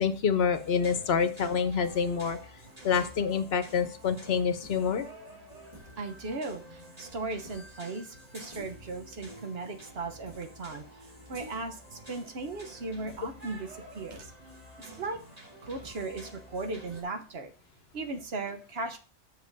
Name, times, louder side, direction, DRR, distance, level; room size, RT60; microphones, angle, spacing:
voice 1, 0.0-2.4 2.8-5.1, left 6 dB, 65° left, 10 dB, 1.0 m, -27 dB
sound 1, 0.5-17.0, right 1 dB, 35° right, 2.6 m, -49 dB
voice 2, 6.0-14.3 14.8-15.2 15.6-17.5 17.9-19.0, right 3 dB, 60° right, 7 dB, 1.2 m, -37 dB
7.6 x 6.4 x 4.0 m, 0.39 s
omnidirectional pair, 1.2 m